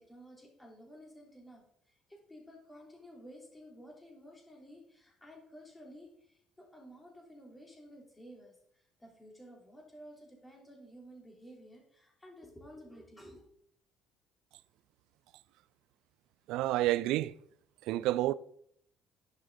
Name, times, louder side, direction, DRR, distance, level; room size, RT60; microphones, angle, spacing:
voice 1, 0.0-13.4, equal, 15° left, 3.3 m, -53 dB
voice 2, 16.5-17.3 17.9-18.3, right 15 dB, 60° right, 0.3 m, -29 dB
10.5 x 6.4 x 3.8 m
figure-of-eight pair, 50°, 0 cm